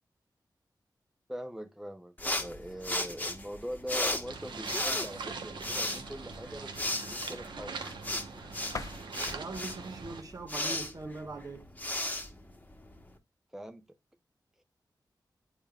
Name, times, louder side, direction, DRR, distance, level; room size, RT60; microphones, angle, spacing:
voice 1, 1.3-7.8 13.5-14.0, equal, 5° right, 0.7 m, -42 dB
sound 1, 2.2-13.1, left 1 dB, 20° left, 1.2 m, -36 dB
sound 2, 4.3-10.2, right 5 dB, 90° right, 1.0 m, -42 dB
sound 3, 8.7-11.5, left 4 dB, 45° left, 0.6 m, -45 dB
voice 2, 9.3-11.7, right 3 dB, 50° right, 1.2 m, -41 dB
8.8 x 5.0 x 2.4 m
wide cardioid pair, 90°, 8 cm